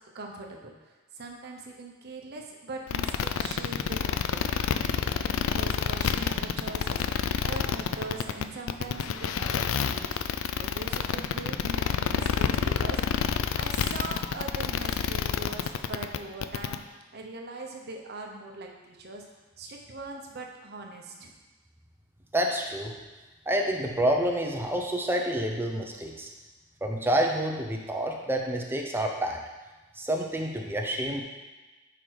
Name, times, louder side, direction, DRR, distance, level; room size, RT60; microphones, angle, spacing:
voice 1, 0.1-4.4 4.9-13.0 13.6-16.8 17.1-19.2 19.6-21.3, right 2 dB, 55° right, 1 dB, 0.9 m, -41 dB
sound 1, 2.9-16.8, left 7 dB, 75° left, 0.4 m, -28 dB
voice 2, 22.3-22.9 23.5-26.3 26.8-29.4 29.9-31.2, right 1 dB, 10° right, 1 dB, 0.7 m, -28 dB
6.0 x 5.0 x 4.7 m, 1.2 s
head